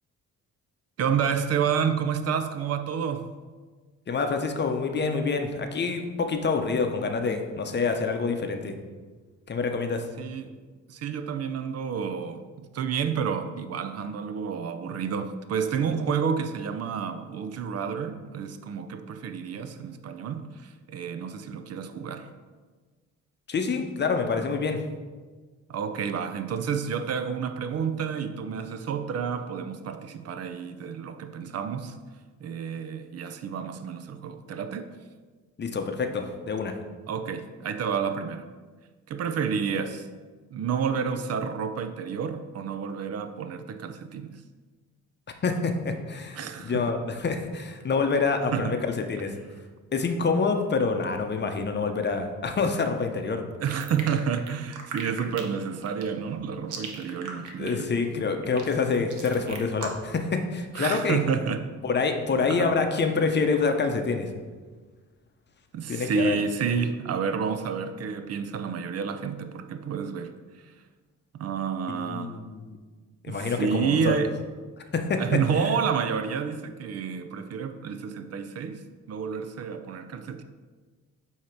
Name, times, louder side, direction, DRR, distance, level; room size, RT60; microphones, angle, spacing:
voice 1, 1.0-3.3 10.2-10.5 10.9-22.3 25.7-32.0 32.4-35.0 37.1-38.5 39.1-40.1 40.5-44.3 46.4-46.8 48.5-48.7 53.6-57.9 60.7-61.7 62.5-62.8 65.7-70.3 71.4-72.4 73.3-74.3 75.2-78.8 79.1-80.4, right 6 dB, 55° right, 9 dB, 0.5 m, -30 dB
voice 2, 4.1-8.7 9.5-10.0 23.5-24.8 35.6-36.7 45.4-48.8 49.1-49.3 49.9-53.4 57.6-61.2 61.8-64.3 65.9-66.4 71.9-72.8 73.2-74.1 74.9-75.2 75.5-75.7, left 4 dB, 35° left, 5 dB, 0.7 m, -27 dB
sound 1, 53.6-60.2, right 4 dB, 75° right, 1.0 m, -38 dB
8.2 x 2.8 x 4.5 m, 1.4 s
cardioid pair, 90°, 30 cm